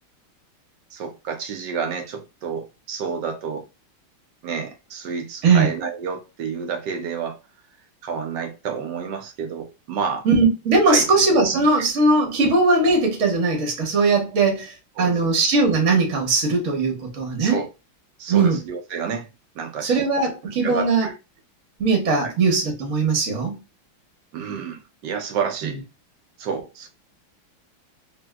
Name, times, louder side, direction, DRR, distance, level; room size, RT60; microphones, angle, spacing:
voice 1, 0.9-3.7 4.4-7.4 8.0-10.3 10.9-11.1 11.4-11.7 15.0-15.3 17.4-17.7 18.2-19.3 19.5-20.0 20.6-21.1 22.2-22.3 24.3-25.8 26.4-26.9, right 6 dB, 75° right, 1.1 m, -30 dB
voice 2, 10.2-17.6 18.3-18.6 19.8-21.1 21.8-23.6, right 3 dB, 50° right, 1.0 m, -19 dB
3.4 x 2.6 x 2.2 m
omnidirectional pair, 2.2 m